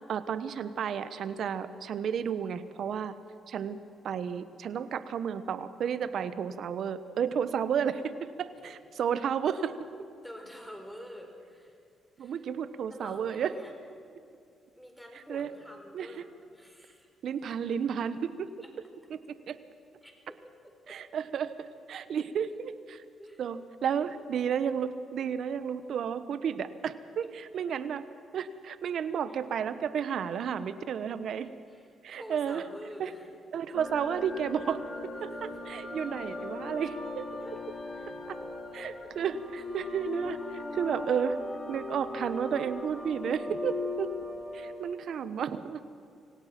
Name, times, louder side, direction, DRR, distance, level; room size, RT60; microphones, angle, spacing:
voice 1, 0.1-3.1 3.5-3.8 4.0-8.1 8.4-9.8 12.2-13.5 15.3-15.5 15.9-16.1 17.2-18.5 19.1-19.2 19.5-19.6 20.9-23.0 23.4-28.0 28.3-31.5 32.0-32.6 33.0-33.1 33.5-34.8 35.2-37.3 38.3-38.4 38.7-41.4 41.7-44.1 44.5-45.8, right 7 dB, 65° right, 13 dB, 1.0 m, -32 dB
voice 2, 10.2-11.8 12.2-12.4 12.9-13.7 14.8-16.3 16.5-17.1 18.0-18.1 18.6-18.7 20.0-21.0 21.6-22.3 23.2-23.4 27.4-27.7 31.4-33.3 33.7-33.8 35.3-35.5 37.4-37.6 37.9-38.1 38.7-39.1 44.0-44.2, equal, ahead, 3 dB, 4.3 m, -48 dB
sound 1, 33.7-44.7, left 2 dB, 30° left, 3.2 m, -38 dB
25.5 x 17.5 x 6.0 m, 2.4 s
cardioid pair, 90°, 0 cm